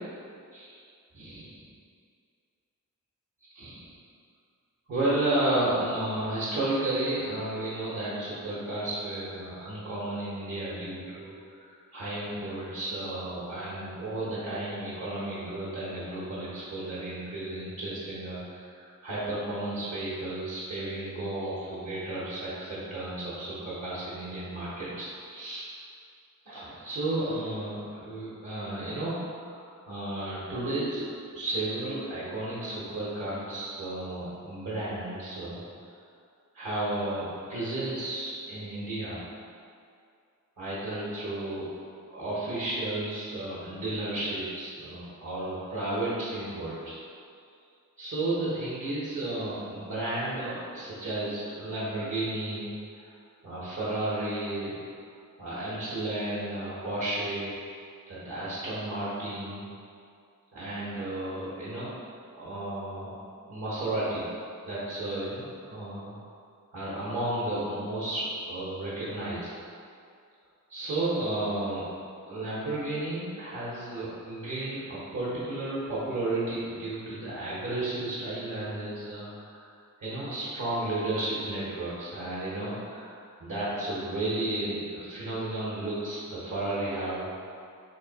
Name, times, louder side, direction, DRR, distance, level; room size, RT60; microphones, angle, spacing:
voice 1, 0.5-0.8 1.2-1.5 3.5-3.9 4.9-11.3 11.6-25.7 26.5-31.1 31.3-35.6 35.9-36.0 36.5-39.2 40.6-41.6 42.1-47.0 48.0-53.1 53.4-54.8 55.4-57.5 58.1-59.7 60.5-61.9 62.3-63.2 63.5-64.3 64.7-66.2 66.7-69.5 70.7-71.9 72.2-79.6 80.0-87.3, right 2 dB, 60° right, -9 dB, 0.8 m, -33 dB
3.1 x 2.6 x 3.9 m, 2.3 s
wide cardioid pair, 85°, 32 cm